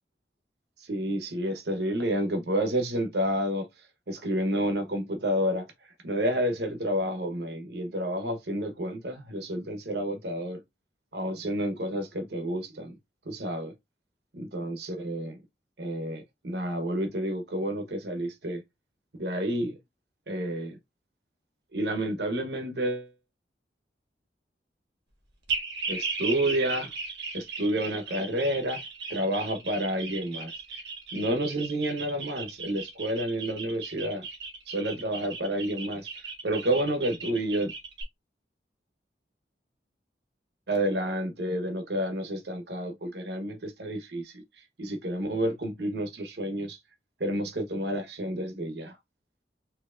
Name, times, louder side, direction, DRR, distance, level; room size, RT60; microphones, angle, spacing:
voice 1, 0.8-3.7 4.1-5.7 6.0-10.6 11.1-12.9 13.2-13.7 14.3-15.4 15.8-18.6 19.2-19.8 20.3-20.7 21.7-23.1 25.9-26.9 27.3-28.8 29.1-30.5 31.1-34.2 34.7-37.7 40.7-44.4 44.8-46.8 47.2-49.0, right 1 dB, 70° right, 1.0 m, -30 dB
sound 1, 25.5-38.0, right 4 dB, 90° right, 1.4 m, -37 dB
4.5 x 2.8 x 2.5 m
head